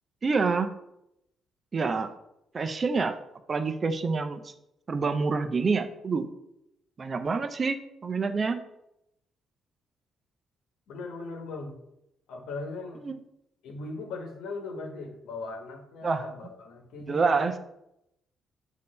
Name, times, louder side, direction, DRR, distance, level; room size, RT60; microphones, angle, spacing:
voice 1, 0.2-0.7 1.7-2.1 2.5-3.2 3.5-4.5 4.9-6.3 7.0-8.6 13.0-13.1 16.0-16.2 17.1-17.5, right 4 dB, 35° right, 9 dB, 0.6 m, -27 dB
voice 2, 10.9-11.7 12.3-13.1 13.6-17.6, left 3 dB, 85° left, 3 dB, 1.1 m, -38 dB
6.6 x 2.8 x 5.3 m, 0.82 s
cardioid pair, 95°, 0 cm